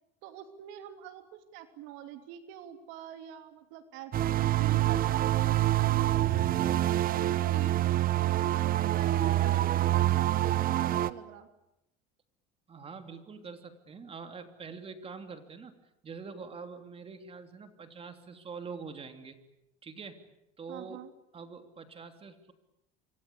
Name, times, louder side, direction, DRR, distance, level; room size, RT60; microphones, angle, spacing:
voice 1, 0.2-6.8 7.2-11.5 20.7-21.1, right 10 dB, 70° right, 8 dB, 3.1 m, -46 dB
sound 1, 4.1-11.1, right 14 dB, 45° right, 1.2 m, -26 dB
voice 2, 12.7-15.7 16.0-19.4 19.8-20.2 20.6-21.0 21.3-22.5, right 5 dB, 30° right, 7 dB, 3.2 m, -44 dB
26.5 x 25.5 x 8.5 m, 0.87 s
supercardioid pair, 110°, 20 cm